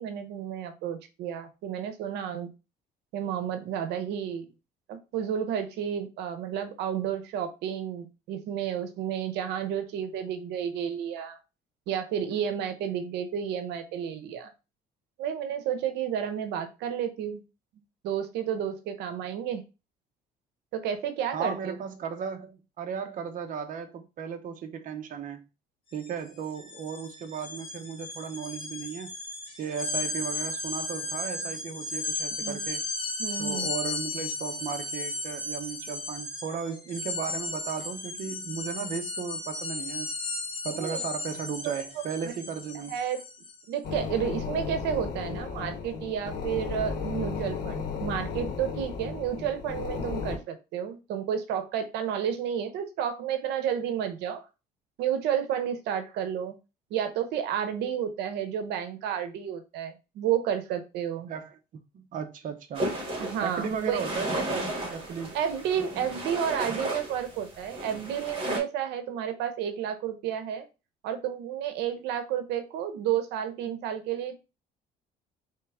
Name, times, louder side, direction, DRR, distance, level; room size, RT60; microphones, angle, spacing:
voice 1, 0.0-2.5 3.1-4.5 4.9-11.4 11.9-14.5 15.2-17.4 18.0-19.6 20.7-21.7 32.4-32.6 33.2-33.7 40.8-41.0 41.6-41.7 42.2-42.3 42.9-43.2 43.7-54.4 55.0-56.5 56.9-61.3 63.2-64.0 65.3-70.6 71.0-74.4, right 9 dB, 85° right, 0.8 m, -31 dB
voice 2, 21.3-25.4 25.9-29.1 29.6-32.8 33.4-40.1 40.6-42.9 61.3-61.6 61.9-62.9 63.4-65.4, right 6 dB, 50° right, 0.7 m, -35 dB
sound 1, 25.9-26.1 26.4-43.6, left 2 dB, 30° left, 2.0 m, -35 dB
sound 2, 43.8-50.4, left 5 dB, 75° left, 1.3 m, -34 dB
sound 3, 62.7-68.6, right 1 dB, 30° right, 2.7 m, -34 dB
4.5 x 3.3 x 3.4 m
cardioid pair, 110°, 17 cm